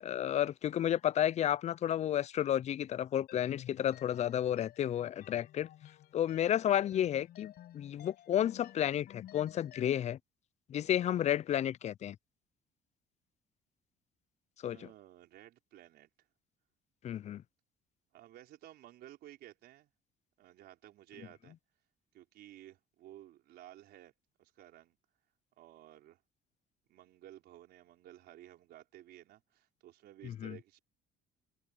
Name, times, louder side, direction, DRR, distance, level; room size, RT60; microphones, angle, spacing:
voice 1, 0.0-5.7 6.1-10.2 10.7-12.2 14.6-14.8 17.0-17.4 30.2-30.6, left 11 dB, 40° left, 0.4 m, -32 dB
sound 1, 3.3-10.1, left 12 dB, 65° left, 5.9 m, -53 dB
voice 2, 14.7-16.1 18.1-19.9 20.4-21.6 22.1-24.1 24.4-25.0 25.6-26.2 26.9-30.8, right 13 dB, 75° right, 4.4 m, -55 dB
cardioid pair, 110°, 17 cm